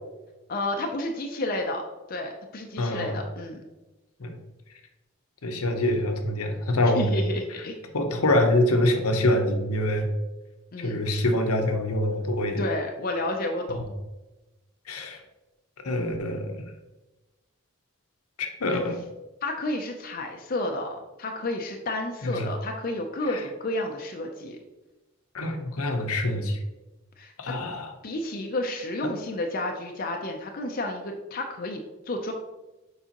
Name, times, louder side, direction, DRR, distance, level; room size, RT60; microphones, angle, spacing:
voice 1, 0.5-1.8 2.1-3.6 6.9-7.8 10.7-11.0 12.6-13.8 18.7-18.8 19.4-24.6 27.2-27.5 28.0-32.3, left 1 dB, 40° left, 2 dB, 0.5 m, -31 dB
voice 2, 2.8-3.2 4.2-4.3 5.4-7.1 7.9-10.1 10.8-12.6 13.7-13.8 14.9-15.2 15.8-16.6 18.4-19.0 22.2-22.5 23.3-23.4 25.3-26.6 27.4-27.9 29.0-29.1, left 1 dB, 80° left, 5 dB, 0.8 m, -25 dB
6.9 x 4.8 x 2.9 m, 1.1 s
head